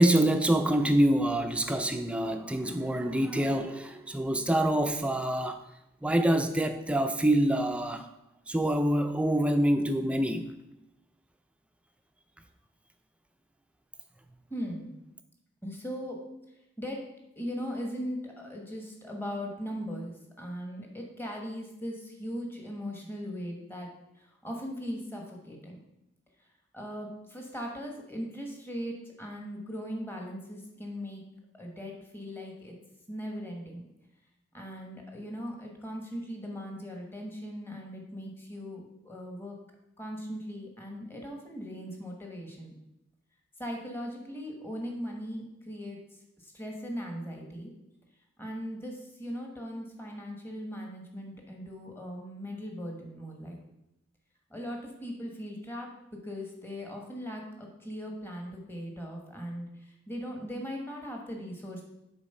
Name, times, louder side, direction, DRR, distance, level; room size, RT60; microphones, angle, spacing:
voice 1, 0.0-5.6 6.0-8.1 8.5-10.5, right 1 dB, 5° right, 0.4 m, -26 dB
voice 2, 14.5-14.9 15.6-16.2 16.8-17.0 17.4-23.9 24.1-25.8 26.7-31.2 31.5-32.8 33.1-33.9 34.5-39.6 40.0-42.7 43.6-46.0 46.4-47.7 48.4-53.6 54.5-61.8, equal, 10° left, 1.1 m, -39 dB
7.2 x 4.0 x 5.4 m
head